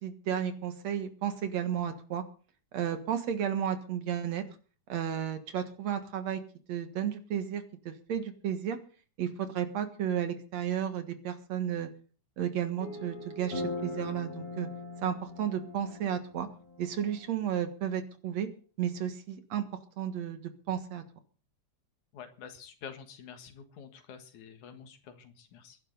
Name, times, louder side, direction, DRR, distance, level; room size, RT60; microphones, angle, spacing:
voice 1, 0.0-2.2 2.7-4.4 4.9-6.4 6.7-8.8 9.2-11.9 12.4-14.7 15.0-16.5 16.8-18.5 18.8-19.6 20.0-20.4 20.7-21.0, right 9 dB, 65° right, 9 dB, 2.7 m, -33 dB
sound 1, 12.8-17.2, left 2 dB, 60° left, 6.5 m, -40 dB
voice 2, 22.1-25.8, left 7 dB, 80° left, 8 dB, 3.1 m, -48 dB
22.0 x 11.0 x 4.0 m, 0.39 s
omnidirectional pair, 3.4 m